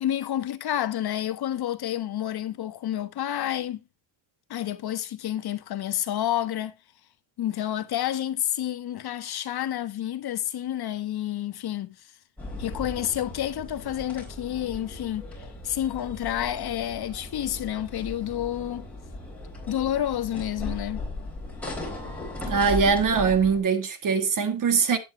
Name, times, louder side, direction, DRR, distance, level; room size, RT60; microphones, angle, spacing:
voice 1, 0.0-3.8 4.5-6.7 7.4-12.0 12.6-18.9 19.7-21.0, left 11 dB, 55° left, 0.8 m, -29 dB
sound 1, 12.4-23.6, left 2 dB, 5° left, 4.1 m, -37 dB
voice 2, 22.5-25.0, right 5 dB, 40° right, 1.4 m, -22 dB
9.1 x 8.7 x 3.0 m
cardioid pair, 140°, 47 cm